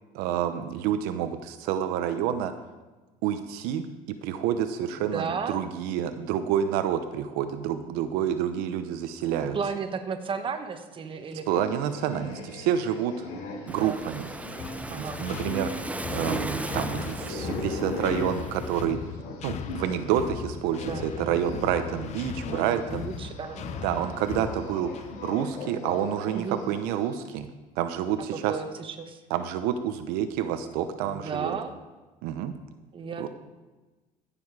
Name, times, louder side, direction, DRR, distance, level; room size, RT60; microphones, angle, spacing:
voice 1, 0.1-2.5 3.2-3.9 4.2-9.6 11.5-13.2 13.6-14.3 14.9-19.0 19.4-23.0 23.8-27.5 27.8-28.5 29.3-31.5 32.2-32.5 33.2-33.3, right 9 dB, 85° right, 9 dB, 0.8 m, -28 dB
voice 2, 5.0-5.6 9.2-11.7 13.7-14.0 14.9-15.2 20.8-21.1 22.5-23.7 26.3-26.6 28.3-29.2 31.0-31.8 32.9-33.3, right 5 dB, 35° right, 7 dB, 1.2 m, -34 dB
sound 1, 11.3-20.0 20.3-27.1, left 1 dB, 70° left, 3.4 m, -39 dB
Waves surf, 13.7-18.8, right 2 dB, 10° right, 0.5 m, -37 dB
sound 2, 14.6-25.3, left 7 dB, 50° left, 0.8 m, -38 dB
15.0 x 7.0 x 4.8 m, 1.2 s
cardioid pair, 110°, 15 cm